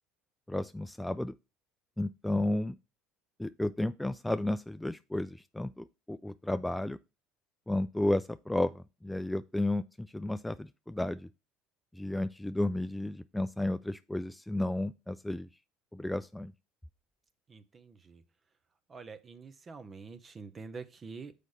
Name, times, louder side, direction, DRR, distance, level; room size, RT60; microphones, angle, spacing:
voice 1, 0.5-1.3 2.0-2.8 3.4-7.0 7.7-11.3 12.0-15.5 15.9-16.5, left 1 dB, 5° left, 0.3 m, -32 dB
voice 2, 17.5-18.2 18.9-21.3, right 4 dB, 35° right, 0.9 m, -46 dB
6.2 x 5.1 x 4.2 m
hypercardioid pair, 75°, 0 cm